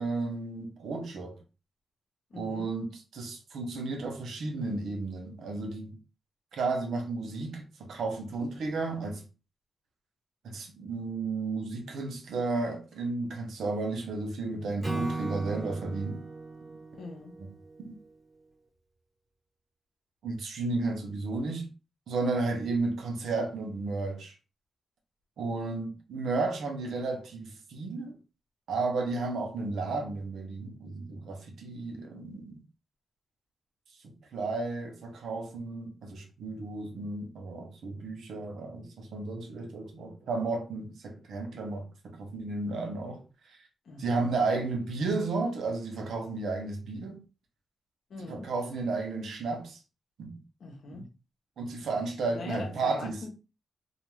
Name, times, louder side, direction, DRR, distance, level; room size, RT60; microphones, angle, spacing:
voice 1, 0.0-1.4 2.3-6.0 6.5-9.2 10.4-16.2 17.4-17.5 17.8-18.0 20.2-21.7 22.1-24.3 25.4-28.2 28.7-32.6 34.0-43.6 44.0-47.2 48.3-49.8 50.2-50.4 50.9-51.1 51.6-53.2, right 3 dB, 85° right, 0.7 m, -33 dB
voice 2, 2.3-2.8 16.9-17.4 43.8-44.3 48.1-48.5 50.6-51.1 52.3-53.3, left 3 dB, 75° left, 0.8 m, -42 dB
Acoustic guitar / Strum, 14.8-18.1, right 3 dB, 20° right, 1.2 m, -37 dB
2.4 x 2.2 x 3.1 m
cardioid pair, 90°, 0 cm